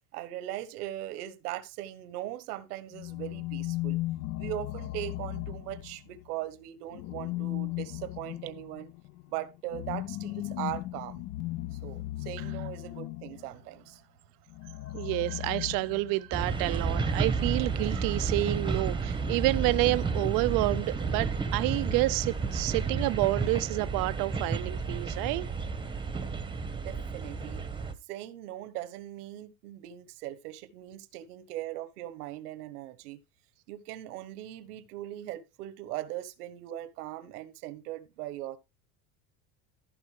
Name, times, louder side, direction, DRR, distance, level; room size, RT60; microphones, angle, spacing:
voice 1, 0.1-4.0 4.4-8.9 9.3-11.2 11.7-14.1 26.8-27.6 28.1-33.2 33.7-38.6, right 14 dB, 90° right, 1.2 m, -39 dB
sound 1, 2.9-6.2 6.9-13.5 14.5-16.4, left 17 dB, 45° left, 0.5 m, -36 dB
voice 2, 14.9-25.5, right 20 dB, 55° right, 0.4 m, -29 dB
sound 2, 16.3-27.9, right 4 dB, 10° right, 0.9 m, -31 dB
14.0 x 5.4 x 3.2 m
supercardioid pair, 115°, 44 cm